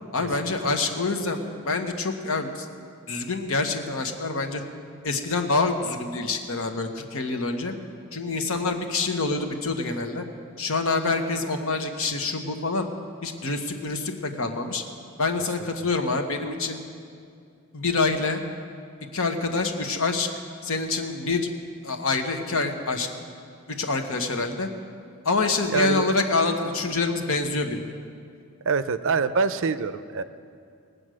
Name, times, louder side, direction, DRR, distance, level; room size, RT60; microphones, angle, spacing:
voice 1, 0.1-2.7 3.1-4.6 5.0-7.7 8.1-10.2 10.6-12.9 13.2-14.8 15.2-16.8 17.7-18.4 19.1-20.3 20.6-21.5 21.8-23.1 23.8-24.7 25.2-27.8, left 3 dB, 65° left, 5 dB, 1.2 m, -26 dB
voice 2, 25.7-26.1 28.7-30.2, right 5 dB, 65° right, 12 dB, 0.5 m, -25 dB
20.5 x 7.9 x 6.3 m, 2.3 s
head